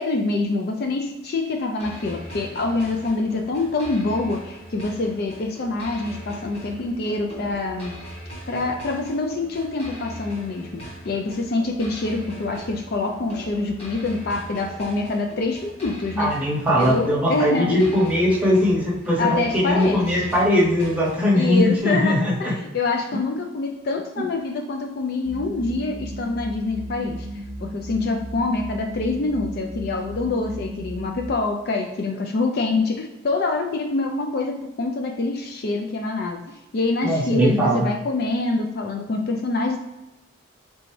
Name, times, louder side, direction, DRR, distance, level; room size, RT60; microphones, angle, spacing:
voice 1, 0.0-7.9 8.5-16.3 16.7-17.9 19.2-20.2 21.3-27.3 27.6-39.8, left 3 dB, 50° left, 4 dB, 0.3 m, -25 dB
sound 1, 1.8-21.8, equal, 30° left, 1.0 m, -40 dB
voice 2, 16.2-22.5 24.2-24.3 37.0-37.9, equal, 5° right, -5 dB, 0.8 m, -20 dB
sound 2, 25.2-31.3, equal, 30° right, 0.4 m, -35 dB
4.0 x 3.3 x 3.1 m, 1.0 s
head